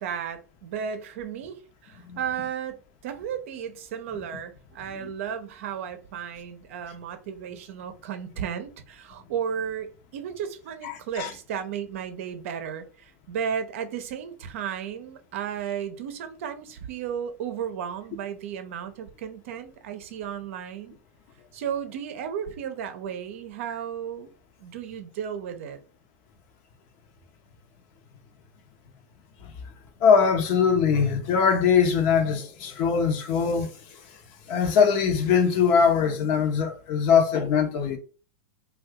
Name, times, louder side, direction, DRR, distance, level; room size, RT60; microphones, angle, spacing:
voice 1, 0.0-21.0 21.5-24.3 24.6-25.8, right 8 dB, 65° right, 0.6 m, -34 dB
voice 2, 10.8-11.3 29.4-29.5 30.0-34.0 34.5-38.0, left 6 dB, 50° left, 0.7 m, -22 dB
2.7 x 2.3 x 3.5 m
hypercardioid pair, 105°, 8 cm